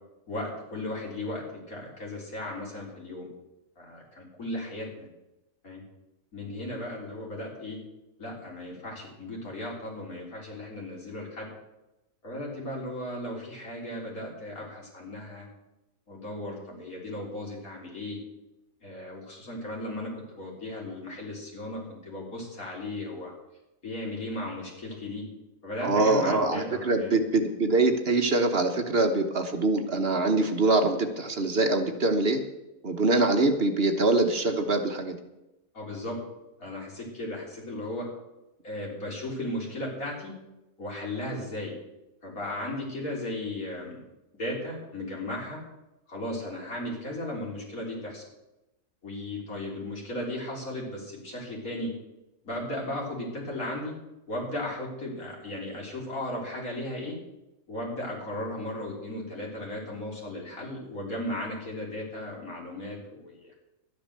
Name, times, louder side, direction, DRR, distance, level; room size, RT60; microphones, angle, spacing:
voice 1, 0.3-3.3 3.8-5.1 5.6-5.8 6.3-7.8 8.2-11.5 12.2-15.5 16.1-18.2 18.8-23.3 23.8-25.3 25.6-27.1 35.7-36.2 36.6-38.1 38.6-40.4 40.8-41.7 42.2-44.0 44.4-45.6 46.1-48.2 49.0-51.9 52.4-53.9 54.3-57.2 57.7-63.5, left 1 dB, 85° left, -2 dB, 4.0 m, -36 dB
voice 2, 25.8-32.4 32.8-35.2, right 2 dB, 45° right, 5 dB, 1.3 m, -24 dB
12.0 x 9.8 x 6.7 m, 0.95 s
omnidirectional pair, 1.4 m